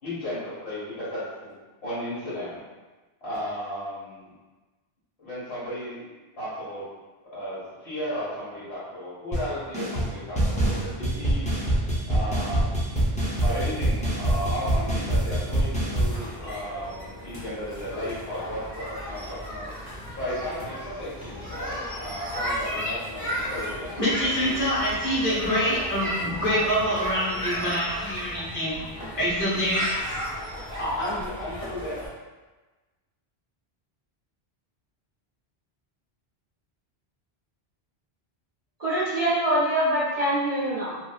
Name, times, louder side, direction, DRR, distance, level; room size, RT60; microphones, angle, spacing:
voice 1, 0.0-1.5 1.8-2.6 3.2-4.3 5.2-6.0 6.4-6.8 7.3-11.4 12.1-19.7 20.2-24.0 24.3-24.5 30.8-32.0, equal, 80° left, -11 dB, 1.9 m, -34 dB
sound 1, 9.3-9.5 9.7-10.1 10.4-16.2, right 1 dB, 10° left, 0.5 m, -25 dB
sound 2, 16.1-32.1, equal, 35° left, 1.1 m, -34 dB
voice 2, 24.0-28.7 29.1-29.8, equal, 55° left, -8 dB, 1.2 m, -25 dB
voice 3, 38.8-41.0, right 1 dB, 50° right, -8 dB, 0.5 m, -24 dB
2.8 x 2.6 x 2.3 m, 1.2 s
omnidirectional pair, 1.1 m